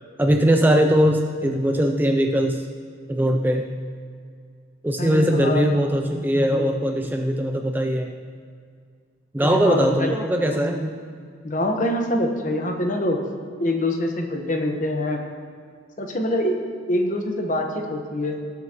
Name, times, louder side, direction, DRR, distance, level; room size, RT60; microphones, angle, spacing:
voice 1, 0.2-2.7 3.1-3.7 4.8-8.1 9.3-11.0, equal, 10° right, 4 dB, 0.4 m, -20 dB
voice 2, 5.0-5.7 9.4-10.8 11.4-13.2 13.6-15.2 16.0-16.6 16.9-18.3, left 1 dB, 40° left, 3 dB, 1.0 m, -25 dB
18.5 x 7.7 x 2.9 m, 2.1 s
head